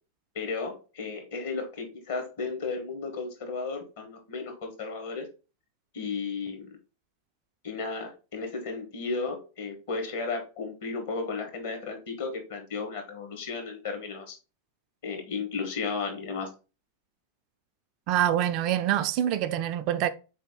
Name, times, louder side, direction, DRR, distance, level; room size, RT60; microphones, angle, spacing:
voice 1, 0.3-5.3 5.9-6.7 7.6-14.4 15.0-16.5, left 4 dB, 55° left, 1.3 m, -34 dB
voice 2, 18.1-20.1, right 11 dB, 40° right, 0.3 m, -25 dB
4.1 x 3.4 x 3.6 m
figure-of-eight pair, 90°, 0 cm